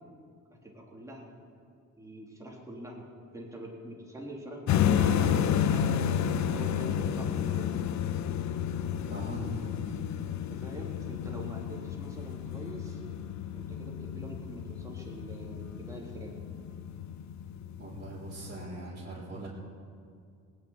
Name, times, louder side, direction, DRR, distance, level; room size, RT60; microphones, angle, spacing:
voice 1, 0.6-1.3 2.0-3.1 3.3-6.0 6.5-7.8 10.1-13.0 13.5-16.3, right 1 dB, 10° right, -3 dB, 3.8 m, -44 dB
sound 1, 4.7-18.6, left 10 dB, 65° left, 0.7 m, -31 dB
Guitar, 4.8-11.4, right 5 dB, 80° right, 1.6 m, -43 dB
voice 2, 9.0-9.7 17.8-19.5, right 1 dB, 35° right, -9 dB, 4.0 m, -40 dB
18.5 x 7.4 x 9.6 m, 2.3 s
cardioid pair, 90°, 30 cm